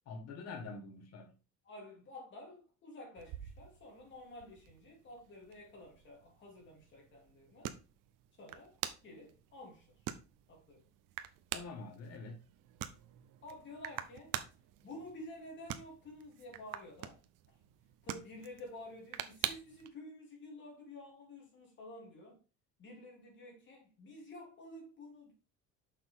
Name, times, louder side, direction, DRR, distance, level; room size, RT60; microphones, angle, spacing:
voice 1, 0.0-1.3 11.5-12.4, left 3 dB, 55° left, 1.7 m, -46 dB
voice 2, 1.6-7.7 8.4-8.8 9.0-9.9 10.5-10.8 13.4-14.3 14.8-17.2 18.0-22.4 22.8-25.3, left 1 dB, 35° left, 3.2 m, -51 dB
sound 1, 3.2-19.9, right 12 dB, 85° right, 0.8 m, -46 dB
6.5 x 5.8 x 3.6 m
cardioid pair, 170°, 31 cm